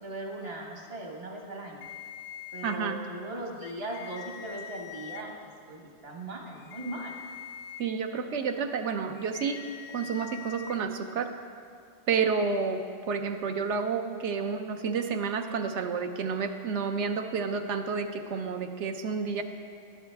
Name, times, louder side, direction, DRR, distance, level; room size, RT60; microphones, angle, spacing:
voice 1, 0.0-1.8 2.5-7.1 19.3-19.4, right 1 dB, 60° right, 0 dB, 1.6 m, -39 dB
sound 1, 1.8-2.8 3.6-5.2 6.5-7.8 9.1-10.8, left 9 dB, 85° left, 0.9 m, -43 dB
voice 2, 2.6-3.0 7.8-9.6 9.9-11.3 12.1-12.8 13.1-19.4, right 5 dB, 75° right, 6 dB, 1.0 m, -30 dB
12.5 x 10.5 x 3.4 m, 2.3 s
omnidirectional pair, 1.2 m